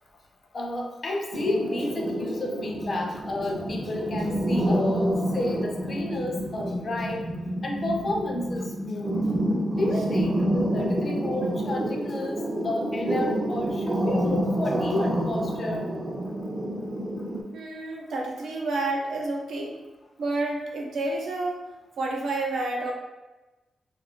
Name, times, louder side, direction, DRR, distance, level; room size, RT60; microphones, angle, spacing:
voice 1, 0.5-7.3 7.6-9.2 9.7-15.9, left 1 dB, 35° left, 1 dB, 0.4 m, -31 dB
sound 1, 1.3-17.4, right 1 dB, 25° right, 0.4 m, -28 dB
voice 2, 17.5-19.8 20.2-21.6 22.0-22.9, right 2 dB, 75° right, -1 dB, 0.6 m, -29 dB
2.6 x 2.3 x 3.5 m, 1.1 s
wide cardioid pair, 160°, 0 cm